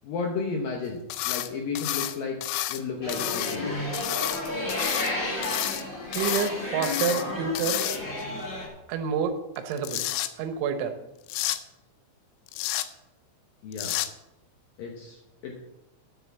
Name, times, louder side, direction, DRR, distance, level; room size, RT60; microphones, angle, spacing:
voice 1, 0.0-2.4 2.7-3.9 13.6-14.0 14.8-15.6, left 4 dB, 70° left, 1 dB, 2.2 m, -33 dB
sound 1, 1.1-1.5 1.8-2.8 3.1-3.6 3.9-5.1 5.4-5.8 6.1-6.5 6.8-7.2 7.6-8.2 9.6-10.3 11.3-11.6 12.5-12.9 13.7-14.1, left 14 dB, 90° left, 3.2 m, -30 dB
sound 2, 3.0-8.7, left 1 dB, 15° left, 3.5 m, -32 dB
voice 2, 6.1-7.8 8.9-10.0 10.4-11.0, right 6 dB, 80° right, 8 dB, 3.3 m, -28 dB
9.9 x 7.7 x 7.2 m, 0.95 s
omnidirectional pair, 5.4 m